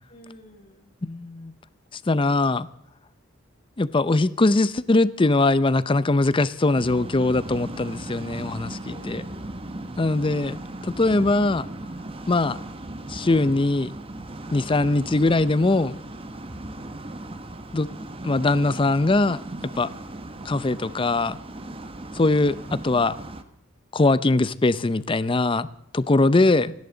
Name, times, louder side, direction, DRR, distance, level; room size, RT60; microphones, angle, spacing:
voice 1, 0.1-0.9 8.8-9.6, left 1 dB, 45° left, 3.1 m, -48 dB
voice 2, 1.0-1.5 2.1-2.7 3.8-9.2 10.0-11.7 12.3-12.6 13.1-13.9 14.5-16.0 17.7-17.9 18.2-19.4 19.8-19.9 20.4-21.4 22.1-23.1 23.9-25.7 25.9-26.7, left 2 dB, 25° left, 0.5 m, -21 dB
sound 1, 6.7-23.4, right 1 dB, 30° right, 1.0 m, -37 dB
30.0 x 10.5 x 3.9 m
head